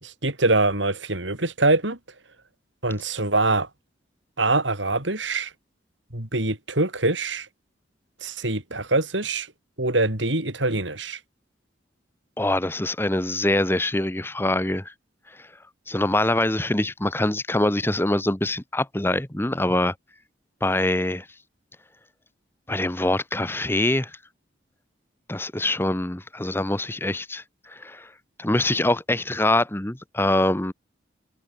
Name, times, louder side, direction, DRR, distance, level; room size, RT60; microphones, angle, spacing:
voice 1, 0.0-2.0 2.8-3.7 4.4-5.5 6.1-7.5 8.2-9.5 9.8-11.2, right 2 dB, 80° right, 5.6 m, -24 dB
voice 2, 12.4-14.9 15.9-19.9 20.6-21.3 22.7-24.2 25.3-28.1 28.4-30.7, left 1 dB, 10° left, 1.1 m, -24 dB
head